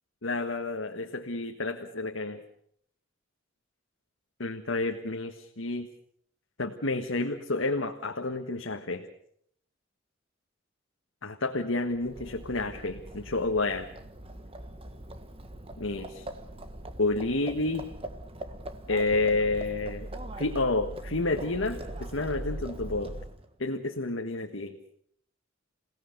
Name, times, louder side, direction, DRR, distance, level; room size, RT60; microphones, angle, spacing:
voice 1, 0.2-2.4 4.4-5.9 6.6-9.1 11.2-13.9 15.8-16.3 17.0-17.8 18.9-20.1 20.4-23.1 23.6-24.7, left 2 dB, 70° left, 3 dB, 1.5 m, -30 dB
Livestock farm animals working animals, 11.9-23.5, right 1 dB, 30° right, 1.5 m, -41 dB
28.5 x 17.0 x 6.8 m, 0.66 s
head